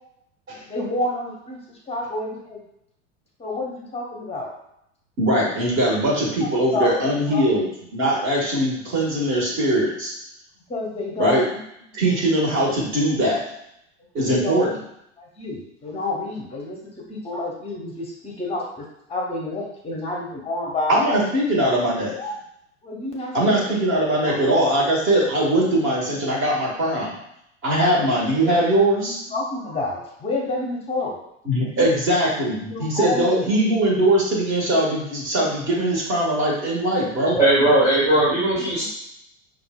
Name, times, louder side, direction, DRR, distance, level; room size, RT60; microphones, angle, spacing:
voice 1, 0.7-1.6 1.9-2.6 3.4-4.5 6.7-7.0 7.3-7.5 10.7-11.6 11.9-12.0 14.2-14.6 15.2-16.8 17.1-21.0 21.8-22.4 22.8-23.8 24.2-24.4 29.0-31.2 31.6-32.0 32.6-33.3 38.6-38.9, left 2 dB, 15° left, -1 dB, 0.8 m, -29 dB
voice 2, 5.2-10.1 11.2-11.5 11.9-13.5 14.1-14.7 20.9-22.1 23.3-27.1 27.6-29.2 31.4-37.4, right 1 dB, 30° right, -3 dB, 1.4 m, -21 dB
voice 3, 37.3-38.9, right 1 dB, 10° right, -12 dB, 1.4 m, -18 dB
5.2 x 2.5 x 2.3 m, 0.77 s
figure-of-eight pair, 85°, 39 cm